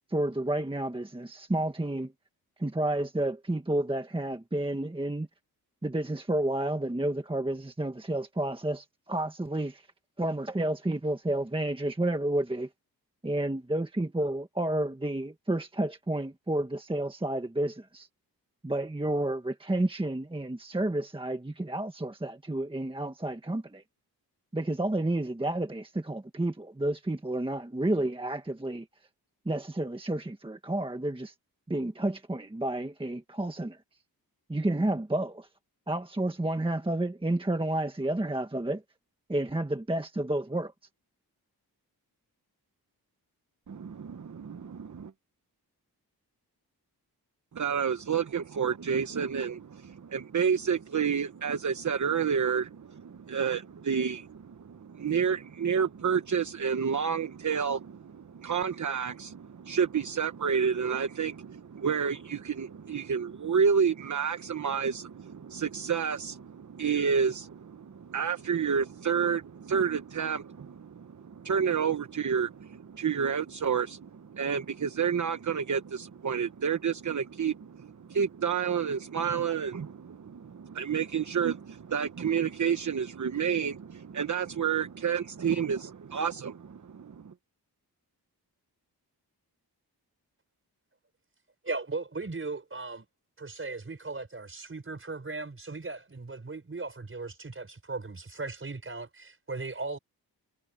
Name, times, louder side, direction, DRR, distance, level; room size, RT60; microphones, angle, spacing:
voice 1, 0.1-2.1 2.6-5.3 5.8-9.8 10.2-12.7 13.2-18.1 18.6-23.8 24.5-28.8 29.4-31.3 31.7-33.8 34.5-35.5 35.9-38.8 39.3-40.7, right 1 dB, 15° right, 1.5 m, -30 dB
voice 2, 44.4-45.1 47.5-87.3, right 7 dB, 50° right, 1.1 m, -30 dB
voice 3, 91.6-93.0 93.4-100.0, right 3 dB, 35° right, 4.9 m, -37 dB
wide cardioid pair, 125°, 38 cm